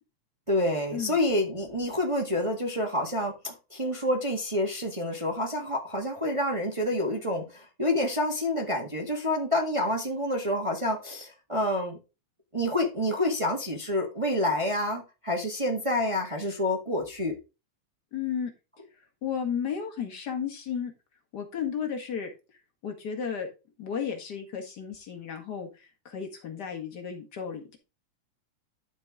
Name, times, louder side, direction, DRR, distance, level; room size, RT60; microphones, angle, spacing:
voice 1, 0.5-12.0 12.5-17.3, left 1 dB, 25° right, 0.7 m, -28 dB
voice 2, 18.1-18.5 19.2-20.9 21.3-22.3 22.8-23.5 23.8-27.8, left 7 dB, 40° left, 1.9 m, -33 dB
13.0 x 4.5 x 3.7 m
omnidirectional pair, 3.6 m